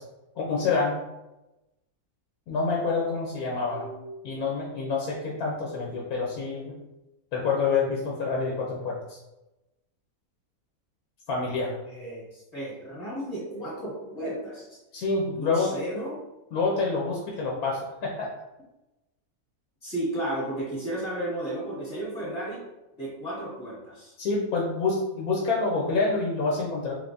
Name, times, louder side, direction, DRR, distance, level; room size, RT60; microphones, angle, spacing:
voice 1, 0.4-0.9 2.5-3.9 4.2-6.8 7.3-9.2 11.3-11.8 14.9-15.7 16.5-18.3 24.2-26.9, left 4 dB, 80° left, -3 dB, 1.2 m, -27 dB
voice 2, 3.6-4.1 11.8-14.8 15.3-16.2 19.8-22.6 23.0-24.1, right 1 dB, 30° left, -9 dB, 1.3 m, -34 dB
3.4 x 3.3 x 2.5 m, 0.99 s
omnidirectional pair, 1.5 m